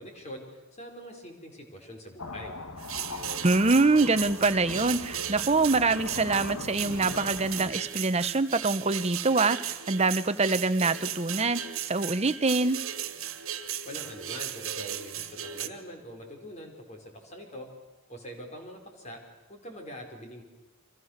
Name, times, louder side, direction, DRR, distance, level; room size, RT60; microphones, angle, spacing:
voice 1, 0.0-2.5 13.8-17.7 18.1-19.2 19.5-20.4, equal, 35° left, 2 dB, 4.8 m, -43 dB
sound 1, 2.2-7.7, left 3 dB, 90° left, 1.5 m, -40 dB
sound 2, 2.8-15.7, right 10 dB, 75° right, 1.8 m, -36 dB
voice 2, 3.4-12.8, right 3 dB, 30° right, 11 dB, 0.9 m, -25 dB
30.0 x 25.0 x 6.6 m, 1.0 s
head